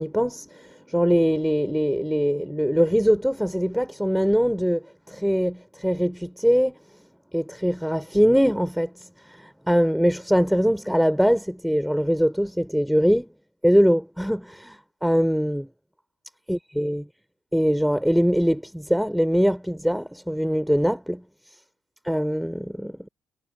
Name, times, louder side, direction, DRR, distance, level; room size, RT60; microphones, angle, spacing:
voice 1, 0.0-6.8 7.3-13.3 13.6-15.7 16.5-17.0 17.5-21.2 22.0-23.1, equal, ahead, 3.9 m, -22 dB
cardioid pair, 90°, 0 cm